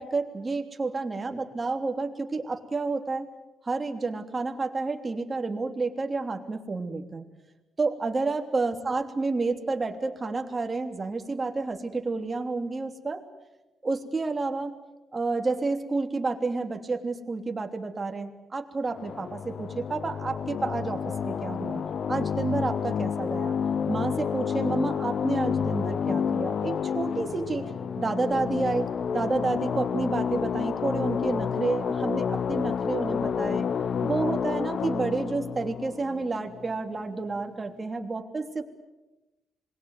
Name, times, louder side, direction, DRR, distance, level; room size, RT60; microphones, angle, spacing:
voice 1, 0.0-3.3 3.6-7.3 7.8-13.2 13.8-14.7 15.1-21.8 22.1-23.6 23.9-27.7 28.0-33.7 34.0-38.6, right 3 dB, 25° right, 5 dB, 3.2 m, -30 dB
sound 1, 18.9-37.0, left 7 dB, 55° left, 0.8 m, -29 dB
27.0 x 21.5 x 9.4 m, 1.0 s
cardioid pair, 100°, 0 cm